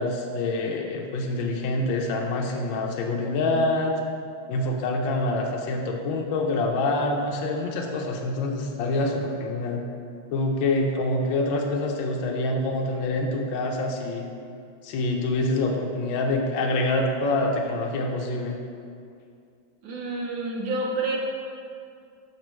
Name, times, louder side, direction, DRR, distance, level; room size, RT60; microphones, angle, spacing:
voice 1, 0.0-3.9 4.5-9.9 10.3-14.3 14.8-18.6, left 2 dB, 75° left, 1 dB, 1.3 m, -26 dB
voice 2, 19.8-21.2, right 2 dB, 70° right, -1 dB, 1.4 m, -28 dB
6.3 x 5.2 x 3.1 m, 2.4 s
omnidirectional pair, 2.3 m